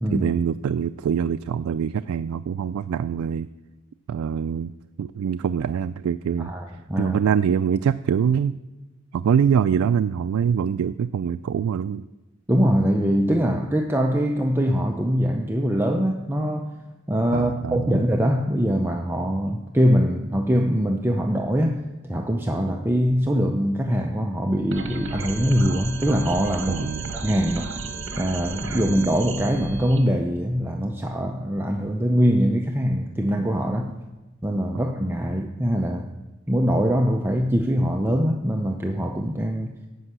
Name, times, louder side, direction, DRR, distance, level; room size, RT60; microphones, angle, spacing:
voice 1, 0.1-3.5 4.1-4.7 5.0-6.5 7.0-8.6 9.1-12.1 17.3-18.0 26.7-27.1, right 7 dB, 85° right, 11 dB, 0.3 m, -24 dB
voice 2, 6.4-7.2 12.5-16.7 17.1-21.8 22.1-26.9 27.1-27.7 28.2-33.9 34.4-36.1 36.5-39.7, equal, 10° right, 2 dB, 0.5 m, -23 dB
sound 1, 24.7-30.0, right 3 dB, 65° right, 1.3 m, -34 dB
11.5 x 5.4 x 8.1 m, 1.1 s
head